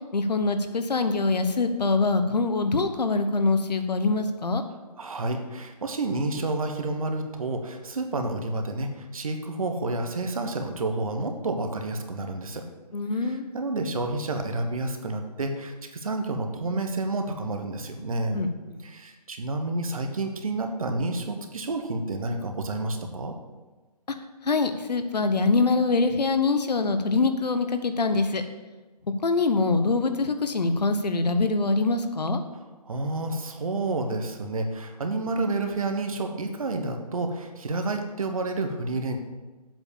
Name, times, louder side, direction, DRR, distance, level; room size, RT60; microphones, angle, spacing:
voice 1, 0.1-4.6 12.9-13.5 18.3-18.8 24.4-28.4 29.2-32.4, left 3 dB, 80° left, 8 dB, 1.0 m, -24 dB
voice 2, 5.0-12.6 13.2-18.4 18.8-23.3 32.5-39.2, right 2 dB, 55° right, 5 dB, 1.2 m, -30 dB
7.6 x 5.0 x 7.1 m, 1.2 s
hypercardioid pair, 165°, 21 cm